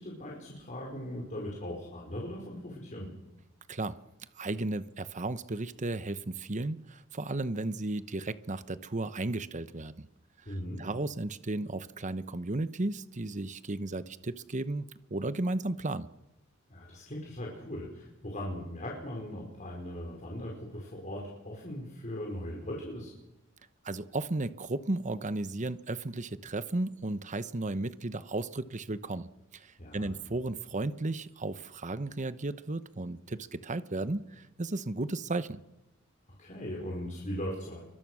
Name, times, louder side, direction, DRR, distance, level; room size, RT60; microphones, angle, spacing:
voice 1, 0.0-3.1 10.4-10.9 16.7-23.1 29.8-30.1 36.4-37.8, equal, 40° left, -2 dB, 5.1 m, -39 dB
voice 2, 4.4-10.1 10.8-16.1 23.8-35.6, right 2 dB, 35° right, 13 dB, 1.0 m, -34 dB
29.5 x 24.0 x 6.4 m, 0.96 s
head